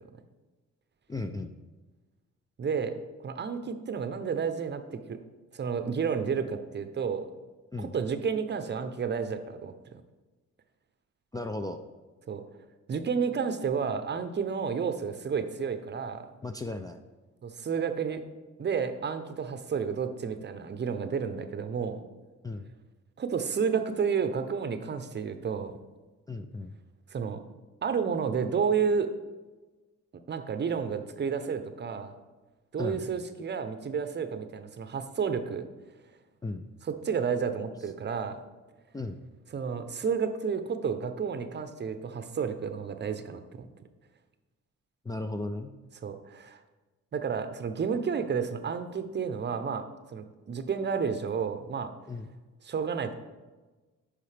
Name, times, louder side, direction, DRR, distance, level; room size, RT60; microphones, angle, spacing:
voice 1, 1.1-1.5 7.7-7.9 11.3-11.8 16.4-17.0 22.4-22.7 26.3-26.8 32.8-33.0 36.4-36.7 38.9-39.2 45.0-45.7 52.1-52.3, left 2 dB, 15° left, 6 dB, 0.4 m, -35 dB
voice 2, 2.6-2.9 3.2-4.8 5.1-5.2 5.5-7.3 7.8-10.0 12.3-12.4 12.9-16.3 17.4-18.2 18.6-22.0 23.2-25.7 27.1-27.4 27.8-29.1 30.3-32.1 32.7-35.7 36.9-38.4 39.5-43.7 46.0-46.6 47.1-49.8 50.1-51.9 52.6-53.1, right 6 dB, 35° right, 9 dB, 0.7 m, -31 dB
10.5 x 5.0 x 3.3 m, 1.2 s
cardioid pair, 90°, 30 cm